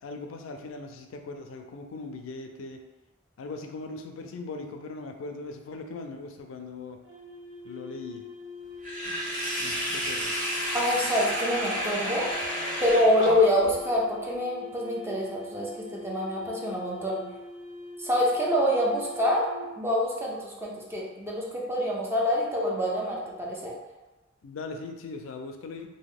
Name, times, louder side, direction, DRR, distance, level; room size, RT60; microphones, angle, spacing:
voice 1, 0.0-2.8 3.4-7.0 7.6-8.2 9.6-10.4 24.4-25.9, left 3 dB, 75° left, 5 dB, 0.4 m, -39 dB
sound 1, 7.0-19.7, left 2 dB, 70° right, 1.2 m, -44 dB
Sink (filling or washing), 8.8-13.7, equal, 40° right, 0.8 m, -31 dB
voice 2, 10.7-12.3 12.8-17.2 18.0-19.5 19.8-23.7, left 1 dB, 10° right, -4 dB, 0.6 m, -26 dB
2.9 x 2.1 x 3.6 m, 1.1 s
head